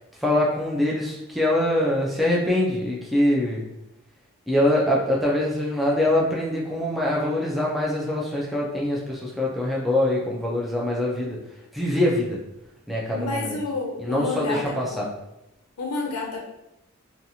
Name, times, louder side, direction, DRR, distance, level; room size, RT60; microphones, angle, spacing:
voice 1, 0.2-3.6 4.5-11.4 11.7-12.4 12.9-13.6 14.0-15.1, left 1 dB, ahead, -5 dB, 0.3 m, -23 dB
voice 2, 13.1-15.0 15.8-16.4, left 3 dB, 85° left, 0 dB, 0.5 m, -30 dB
2.8 x 2.4 x 2.6 m, 0.88 s
head